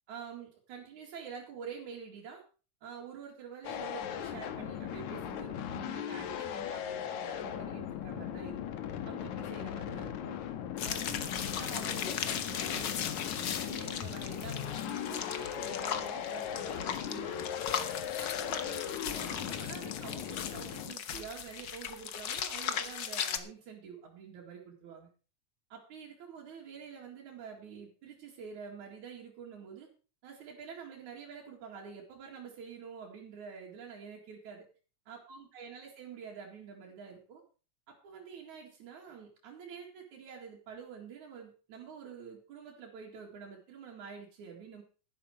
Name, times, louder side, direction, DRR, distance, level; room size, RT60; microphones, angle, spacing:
voice 1, 0.1-2.4 2.8-8.6 9.0-10.4 10.8-17.4 18.2-25.1 25.7-29.9 30.2-34.7 35.1-37.4 37.9-44.8, right 6 dB, 85° right, -2 dB, 3.6 m, -47 dB
sound 1, 3.6-20.9, left 9 dB, 80° left, 2.6 m, -38 dB
sound 2, 10.8-23.4, left 8 dB, 60° left, 1.1 m, -37 dB
12.0 x 11.5 x 4.7 m, 0.37 s
omnidirectional pair, 3.3 m